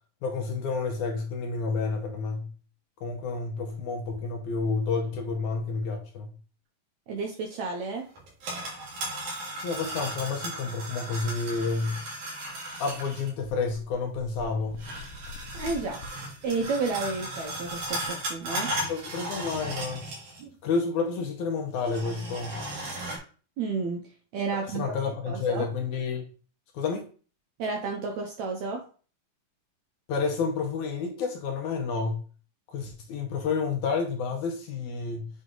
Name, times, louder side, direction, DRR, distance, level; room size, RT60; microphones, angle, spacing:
voice 1, 0.2-2.5 3.0-6.3 9.6-12.0 12.8-14.8 18.9-20.1 20.6-22.6 24.7-26.3 26.7-27.1 30.1-32.2 32.7-35.3, left 4 dB, 70° left, 2.0 m, -30 dB
voice 2, 7.1-8.1 15.5-16.0 16.4-18.7 20.4-20.5 23.6-24.1 24.3-25.0 25.3-25.7 27.6-28.8, right 4 dB, 75° right, 1.7 m, -31 dB
sound 1, 8.2-13.3 14.8-20.5 20.8-20.9 21.8-23.2, right 1 dB, 60° right, 3.0 m, -36 dB
sound 2, 13.4-18.6, left 4 dB, 85° left, 2.6 m, -46 dB
7.9 x 3.2 x 3.8 m
omnidirectional pair, 4.0 m